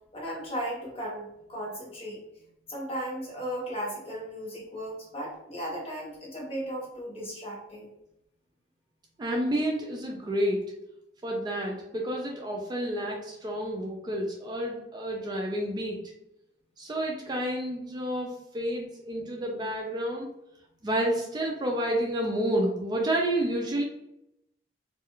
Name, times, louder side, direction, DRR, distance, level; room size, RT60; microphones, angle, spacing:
voice 1, 0.1-2.2 2.7-7.9, equal, 30° left, -3 dB, 0.9 m, -36 dB
voice 2, 9.2-10.6 11.2-16.0 16.8-20.3 20.8-23.8, right 1 dB, 25° right, 0 dB, 0.3 m, -30 dB
2.4 x 2.3 x 2.9 m, 0.84 s
head